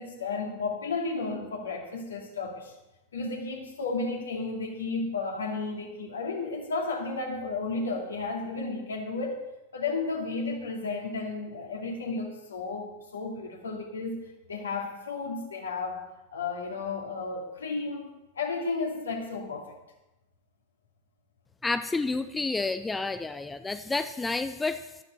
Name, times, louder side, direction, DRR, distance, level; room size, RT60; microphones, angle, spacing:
voice 1, 0.0-2.7 3.1-9.4 9.7-14.2 14.5-16.0 16.3-19.7, left 3 dB, 70° left, 1 dB, 2.5 m, -33 dB
voice 2, 21.6-24.9, left 3 dB, 10° left, 11 dB, 0.5 m, -30 dB
13.5 x 12.0 x 4.6 m, 0.97 s
figure-of-eight pair, 90°, 0 cm